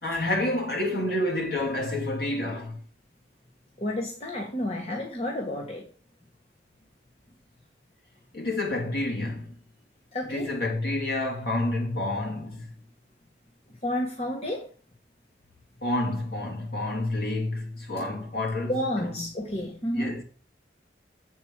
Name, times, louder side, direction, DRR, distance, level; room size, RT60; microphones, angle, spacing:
voice 1, 0.0-2.8 8.3-9.6 10.3-12.7 15.8-18.7 19.0-19.3 19.9-20.2, left 2 dB, 55° left, 2.6 m, -29 dB
voice 2, 3.8-5.9 10.1-10.5 13.8-14.7 18.7-20.2, left 1 dB, 35° left, 1.5 m, -30 dB
8.0 x 4.7 x 7.3 m
head